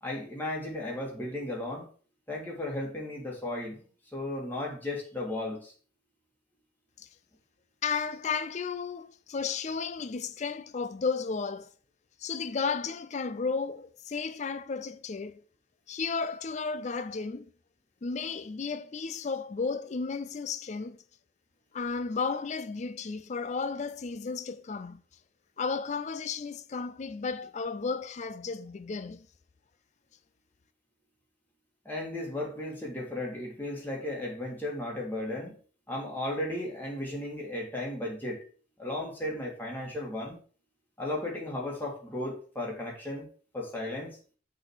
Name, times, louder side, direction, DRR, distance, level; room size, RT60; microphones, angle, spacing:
voice 1, 0.0-1.9 2.3-3.8 4.1-5.7 31.8-35.5 35.9-38.4 38.8-40.4 41.0-43.3 43.5-44.2, left 1 dB, 10° left, 2.2 m, -35 dB
voice 2, 7.8-11.7 12.2-15.4 15.9-17.5 18.0-21.0 21.7-25.0 25.6-29.3, left 5 dB, 40° left, 0.4 m, -33 dB
6.4 x 4.1 x 6.1 m
head